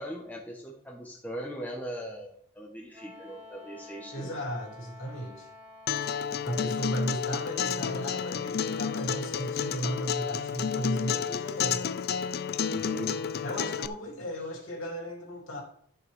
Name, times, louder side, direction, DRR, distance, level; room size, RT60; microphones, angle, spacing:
voice 1, 0.0-4.3 12.7-13.1, equal, 10° left, -1 dB, 1.2 m, -39 dB
Wind instrument woodwind instrument, 2.9-6.6, left 3 dB, 25° right, 2.0 m, -50 dB
voice 2, 4.1-5.5 6.4-11.8 13.4-15.6, right 1 dB, 65° left, 0 dB, 3.0 m, -35 dB
Acoustic guitar, 5.9-13.9, left 7 dB, 45° left, 0.3 m, -31 dB
13.0 x 6.8 x 3.6 m, 0.63 s
head